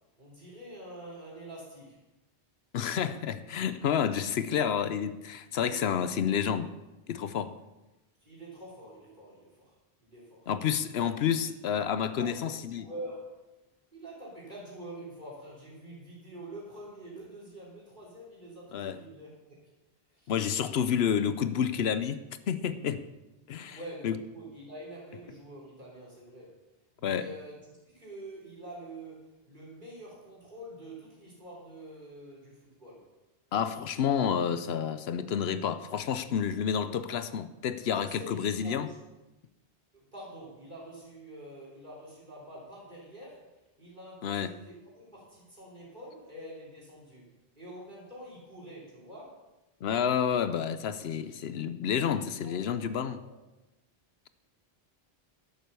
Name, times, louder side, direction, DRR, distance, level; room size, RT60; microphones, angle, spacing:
voice 1, 0.2-2.0 5.8-6.3 8.2-9.7 10.0-10.5 12.0-12.3 12.7-13.5 13.9-19.7 20.1-20.3 23.7-26.6 27.0-27.6 27.9-33.1 38.0-39.0 39.9-43.5 43.8-47.3 47.6-49.4 52.4-53.4, right 1 dB, 50° right, 3.8 m, -46 dB
voice 2, 2.7-6.7 7.1-7.5 10.5-12.9 18.7-19.0 20.3-23.0 23.5-23.8 24.0-24.1 27.0-27.3 33.5-38.9 44.2-44.5 49.8-53.2, left 8 dB, 80° left, 0.9 m, -29 dB
12.0 x 7.8 x 6.8 m
omnidirectional pair, 1.1 m